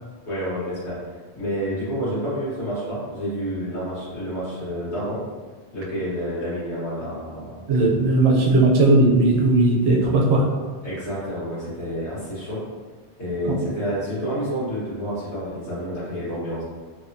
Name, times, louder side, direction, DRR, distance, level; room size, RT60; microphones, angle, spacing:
voice 1, 0.2-1.0 1.3-5.2 5.7-7.7 10.8-12.6 13.2-16.6, equal, 85° left, -9 dB, 1.5 m, -29 dB
voice 2, 7.7-10.5 13.4-13.6, right 2 dB, 75° right, -2 dB, 0.8 m, -17 dB
3.0 x 2.1 x 2.5 m, 1.4 s
omnidirectional pair, 1.1 m